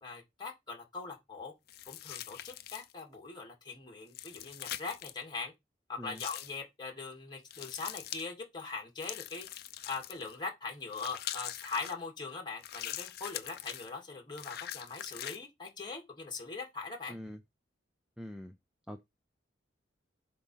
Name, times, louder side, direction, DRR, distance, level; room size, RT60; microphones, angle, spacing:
voice 1, 0.0-1.5 1.9-5.5 5.9-9.5 9.9-17.2, left 4 dB, 25° left, 2.2 m, -41 dB
sound 1, 1.7-3.0 4.1-5.2 6.2-6.6 7.5-8.3 9.0-10.3 10.9-11.9 12.6-13.9 14.4-15.4, left 12 dB, 55° left, 0.6 m, -43 dB
voice 2, 17.1-17.4 18.2-18.6 18.9-19.0, equal, 5° right, 0.4 m, -44 dB
7.8 x 3.0 x 5.5 m
head